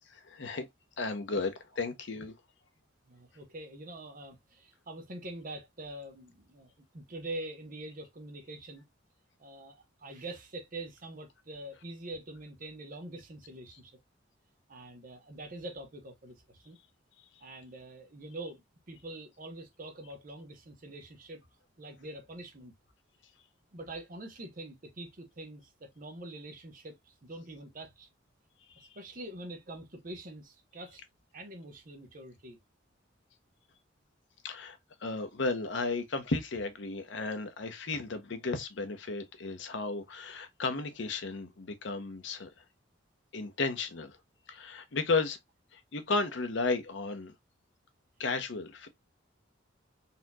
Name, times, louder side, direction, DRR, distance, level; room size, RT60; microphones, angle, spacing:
voice 1, 0.2-0.7 1.0-2.3 28.7-28.9 34.4-42.5 43.3-44.2 44.5-45.4 45.7-47.3 48.2-48.9, left 3 dB, 65° left, 0.7 m, -34 dB
voice 2, 3.1-8.9 9.4-14.0 14.7-16.8 17.4-21.4 21.8-22.7 23.7-28.1 28.8-31.0 31.3-32.6, right 2 dB, 45° right, 0.9 m, -45 dB
4.1 x 2.8 x 2.2 m
head